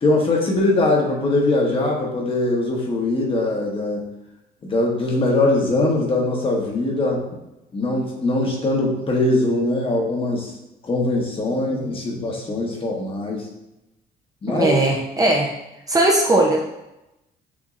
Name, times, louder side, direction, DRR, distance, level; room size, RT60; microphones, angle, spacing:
voice 1, 0.0-4.0 4.6-7.2 7.7-10.5 10.8-13.5 14.4-14.7, left 2 dB, 30° left, -1 dB, 1.2 m, -21 dB
voice 2, 14.5-15.5 15.9-16.6, right 2 dB, 20° right, -1 dB, 0.7 m, -18 dB
7.1 x 2.8 x 2.5 m, 0.93 s
cardioid pair, 110°, 17 cm